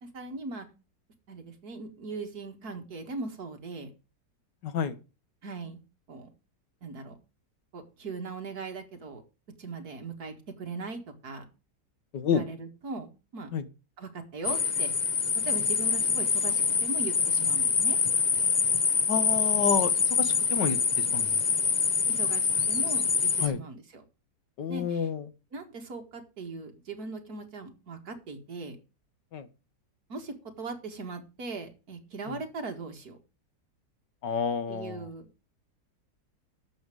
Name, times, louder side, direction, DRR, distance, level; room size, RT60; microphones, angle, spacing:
voice 1, 0.0-0.7 1.3-3.9 5.4-5.8 6.1-6.3 6.8-7.2 7.7-9.2 9.6-11.5 12.3-13.5 14.0-14.9 15.5-18.0 22.1-24.0 24.7-25.1 25.5-28.8 30.1-33.2 34.7-35.3, right 3 dB, 60° right, 5 dB, 2.2 m, -39 dB
voice 2, 4.6-5.0 12.1-12.4 13.5-13.6 19.1-19.9 20.2-21.4 23.4-23.6 24.6-25.3 29.3-29.5 32.3-32.4 34.2-35.1, left 7 dB, 75° left, 11 dB, 1.8 m, -29 dB
sound 1, 14.4-23.5, left 5 dB, 50° left, 0.5 m, -25 dB
11.5 x 7.3 x 5.0 m, 0.31 s
omnidirectional pair, 1.9 m